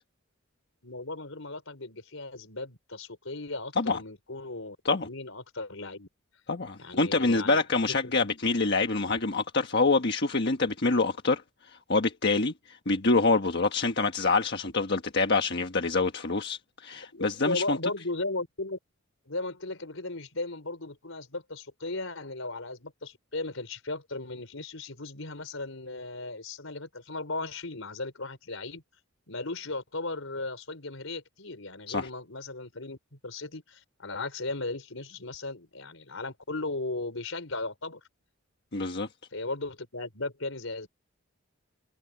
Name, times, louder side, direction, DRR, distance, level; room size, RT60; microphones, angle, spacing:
voice 1, 0.8-4.8 5.0-6.1 6.8-7.6 8.0-8.3 16.9-18.8 19.3-28.8 29.3-38.0 39.3-40.9, left 2 dB, 75° left, 4.7 m, -36 dB
voice 2, 6.5-17.8 31.9-32.1 38.7-39.1, left 3 dB, 55° left, 1.4 m, -26 dB
head